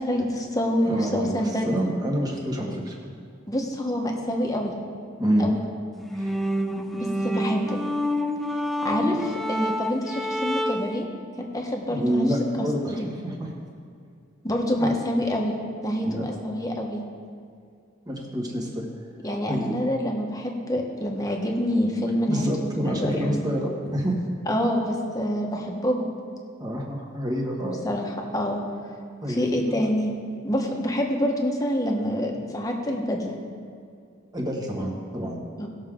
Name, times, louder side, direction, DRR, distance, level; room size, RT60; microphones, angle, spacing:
voice 1, 0.0-1.7 3.5-4.7 5.4-5.6 6.9-7.8 8.8-9.1 9.5-11.1 11.4-12.3 12.8-13.1 14.4-15.5 15.8-17.0 19.2-23.4 24.5-26.1 27.6-28.6 29.3-30.1 30.4-33.4 35.6-35.7, equal, 20° left, 0 dB, 1.3 m, -26 dB
voice 2, 0.8-3.0 5.2-5.5 6.1-6.3 11.9-13.5 14.8-14.9 16.0-16.3 18.1-18.8 19.5-19.9 22.3-24.2 26.6-27.8 29.2-29.8 34.3-35.4, equal, 20° right, -1 dB, 1.6 m, -27 dB
sound 1, 6.0-11.0, equal, ahead, 0.5 m, -28 dB
18.5 x 6.5 x 3.8 m, 2.3 s
head